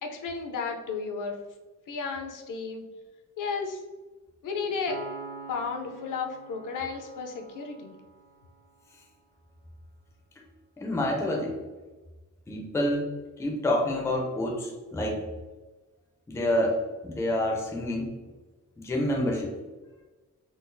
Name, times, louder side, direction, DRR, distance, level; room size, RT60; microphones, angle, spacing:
voice 1, 0.0-1.4 1.9-2.8 3.4-3.8 4.4-5.0 5.5-8.0, left 5 dB, 70° left, 3 dB, 0.5 m, -33 dB
Piano, 4.9-8.5, right 3 dB, 40° right, 0.6 m, -44 dB
voice 2, 10.8-11.6 12.5-13.1 13.4-15.2 16.3-18.1 18.8-19.5, left 1 dB, 10° left, -1 dB, 0.4 m, -28 dB
3.8 x 2.3 x 2.6 m, 1.2 s
wide cardioid pair, 175°, 33 cm